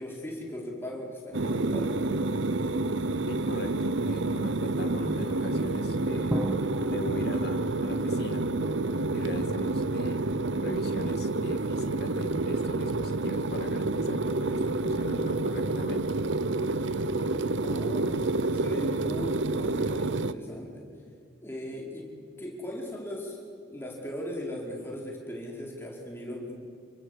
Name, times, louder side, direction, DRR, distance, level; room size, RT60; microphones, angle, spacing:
voice 1, 0.0-2.4 9.1-9.5 17.6-20.9 21.4-22.1 22.4-26.5, equal, 10° left, -2 dB, 4.8 m, -38 dB
sound 1, 1.3-20.3, right 2 dB, 80° right, 0.9 m, -29 dB
voice 2, 3.3-6.4 6.9-8.5 9.1-10.2 10.5-16.0, left 1 dB, 55° left, 6 dB, 2.1 m, -40 dB
Drum, 6.3-8.0, right 1 dB, 15° right, 0.9 m, -33 dB
28.0 x 23.5 x 8.2 m, 2.4 s
head